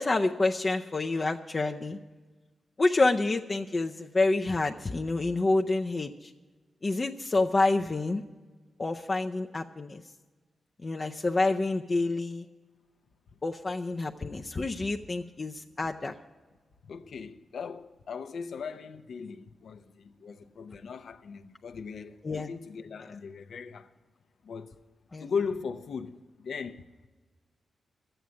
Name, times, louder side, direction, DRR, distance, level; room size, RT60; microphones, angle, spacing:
voice 1, 0.0-2.0 2.8-6.3 6.8-8.2 8.8-10.0 10.8-12.5 13.4-16.2 22.2-22.5 25.1-25.3, left 2 dB, 35° left, 0.5 m, -28 dB
voice 2, 16.8-23.9 24.4-24.8 25.2-26.8, left 5 dB, 70° left, 0.7 m, -38 dB
12.5 x 9.0 x 8.4 m
cardioid pair, 100°, 0 cm